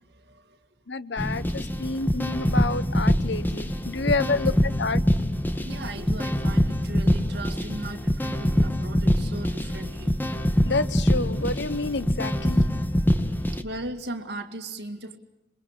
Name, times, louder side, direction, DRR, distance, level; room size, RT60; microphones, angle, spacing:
voice 1, 0.1-0.6 5.6-10.4 12.7-12.8 13.6-15.2, right 2 dB, 55° right, 2.3 m, -38 dB
voice 2, 0.9-5.0 10.6-12.7, left 3 dB, 65° left, 0.9 m, -29 dB
sound 1, 1.2-13.6, equal, 10° left, 1.2 m, -24 dB
26.0 x 23.0 x 8.3 m
head